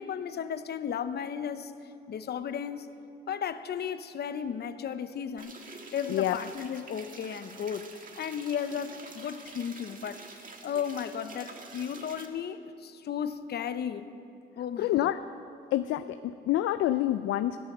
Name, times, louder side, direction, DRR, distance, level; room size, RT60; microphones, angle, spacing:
voice 1, 0.0-1.7 2.1-2.9 3.3-5.6 5.9-14.2 14.5-15.1, left 8 dB, 55° left, 11 dB, 0.9 m, -35 dB
sound 1, 5.4-12.3, right 3 dB, 45° right, 1.8 m, -47 dB
voice 2, 14.8-15.2 15.7-17.6, left 13 dB, 80° left, 11 dB, 0.5 m, -27 dB
16.0 x 12.5 x 6.7 m, 2.5 s
cardioid pair, 90°, 20 cm